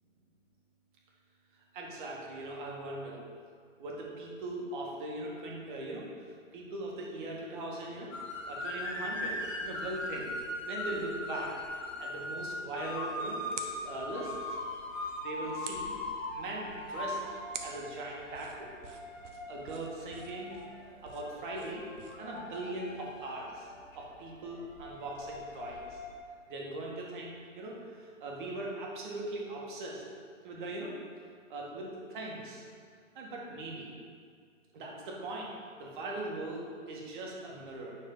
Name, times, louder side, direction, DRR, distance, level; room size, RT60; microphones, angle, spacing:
voice 1, 1.7-3.2 3.8-8.1 8.5-10.3 10.6-14.3 15.2-15.9 16.3-18.7 19.5-20.5 21.0-21.8 22.2-23.7 23.9-26.0 26.5-30.0 30.4-30.9 31.5-32.6 33.1-33.9 34.7-35.5 35.8-38.0, right 2 dB, 40° right, -2 dB, 1.8 m, -40 dB
sound 1, 8.1-26.2, left 1 dB, 75° left, 2.0 m, -40 dB
sound 2, 12.7-22.4, right 5 dB, 60° right, 1.1 m, -50 dB
9.6 x 6.2 x 3.9 m, 2.1 s
hypercardioid pair, 150°, 40 cm